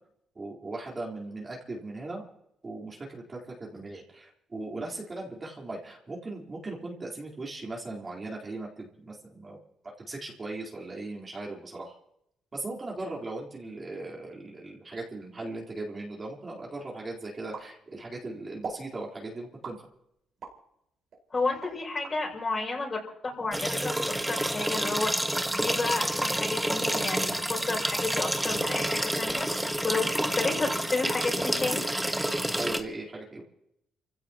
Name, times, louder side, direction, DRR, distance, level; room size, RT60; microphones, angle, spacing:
voice 1, 0.3-2.2 2.6-9.6 10.0-11.9 12.5-19.8 32.5-33.4, right 2 dB, 30° right, -3 dB, 4.0 m, -38 dB
sound 1, 17.5-18.2 18.6-18.9 19.6-20.6 21.1-22.2, right 5 dB, 60° right, 5.1 m, -41 dB
voice 2, 21.3-23.9 24.3-25.1 25.5-29.5 29.8-31.8, left 3 dB, 30° left, -1 dB, 6.6 m, -31 dB
sound 2, 23.5-32.8, right 1 dB, 5° right, 1.4 m, -29 dB
28.5 x 16.5 x 3.0 m, 0.76 s
cardioid pair, 90°, 0 cm